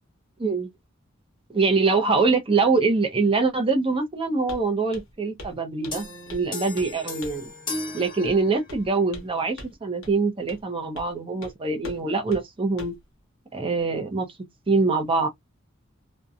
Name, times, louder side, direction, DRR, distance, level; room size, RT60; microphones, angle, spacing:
voice 1, 0.4-0.7 1.5-6.1 6.3-7.5 7.9-13.0 13.5-14.3 14.7-15.3, right 4 dB, 25° right, 0.6 m, -24 dB
Walk footsteps, 4.5-4.7 4.9-5.1 5.4-5.6 5.8-6.5 6.8-6.9 7.2-7.5 8.3-8.4 8.7-9.3 9.6-9.7 10.0-10.1 10.5-10.6 11.0-11.1 11.4-11.5 11.8-12.0 12.3-12.4 12.8-13.0, left 1 dB, 70° left, 0.9 m, -41 dB
sound 1, 5.9-8.9, left 2 dB, 25° left, 1.3 m, -36 dB
2.7 x 2.1 x 2.4 m
head